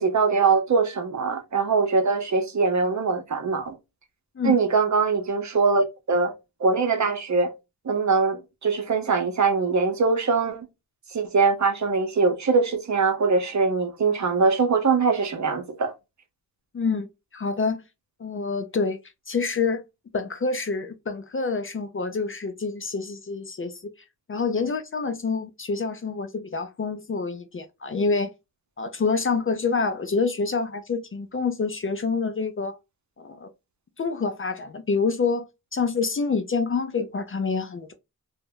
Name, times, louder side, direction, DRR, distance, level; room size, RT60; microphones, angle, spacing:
voice 1, 0.0-3.7 4.4-6.3 6.6-7.5 7.8-10.7 11.1-15.9, right 4 dB, 50° right, 0.7 m, -22 dB
voice 2, 16.7-17.1 17.3-17.8 18.2-19.0 19.3-19.8 20.1-23.8 24.3-28.3 28.8-32.8 33.2-33.5 34.0-35.4 35.7-37.9, left 4 dB, 35° left, 0.5 m, -27 dB
2.1 x 2.0 x 3.6 m
cardioid pair, 50°, 37 cm